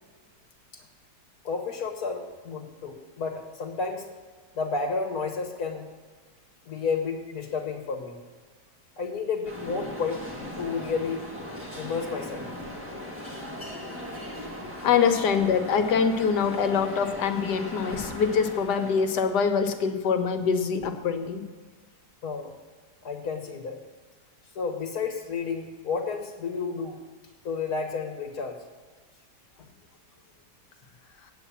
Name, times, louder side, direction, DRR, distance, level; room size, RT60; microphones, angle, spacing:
voice 1, 1.4-4.1 4.5-5.9 6.7-8.2 9.0-10.2 10.6-11.3 11.7-12.4 22.2-22.5 23.0-23.8 24.5-27.0 27.4-28.6, left 5 dB, 60° left, 3 dB, 1.6 m, -31 dB
sound 1, 9.4-19.5, left 1 dB, 10° right, 1.6 m, -39 dB
voice 2, 14.8-21.4, left 6 dB, 80° left, 6 dB, 1.5 m, -24 dB
9.0 x 8.4 x 6.9 m, 1.5 s
omnidirectional pair, 1.8 m